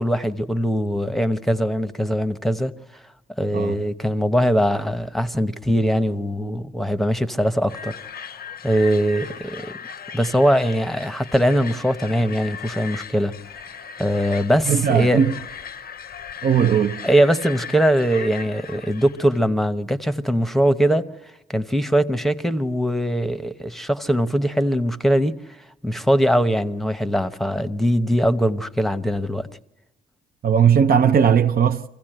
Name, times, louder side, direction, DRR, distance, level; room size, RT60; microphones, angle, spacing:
voice 1, 0.0-2.7 3.4-8.0 8.6-9.7 10.1-13.3 14.0-15.2 17.0-21.0 21.5-25.4 25.8-29.5, equal, ahead, 0.9 m, -21 dB
sound 1, 7.7-19.4, left 7 dB, 50° left, 0.7 m, -38 dB
voice 2, 14.7-15.3 16.4-17.0 30.4-31.8, right 7 dB, 50° right, 0.7 m, -17 dB
25.0 x 15.5 x 9.0 m
cardioid pair, 90°, 20 cm